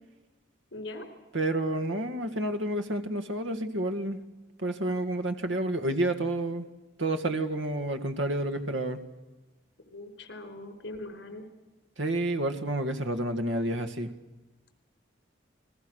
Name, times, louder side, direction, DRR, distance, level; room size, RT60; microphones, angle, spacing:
voice 1, 0.7-1.0 9.9-11.5, left 2 dB, 70° left, 7 dB, 4.7 m, -41 dB
voice 2, 1.3-4.2 4.6-6.7 7.0-9.0 12.0-14.1, right 1 dB, 80° right, 8 dB, 2.0 m, -29 dB
29.5 x 22.0 x 6.4 m, 1.1 s
head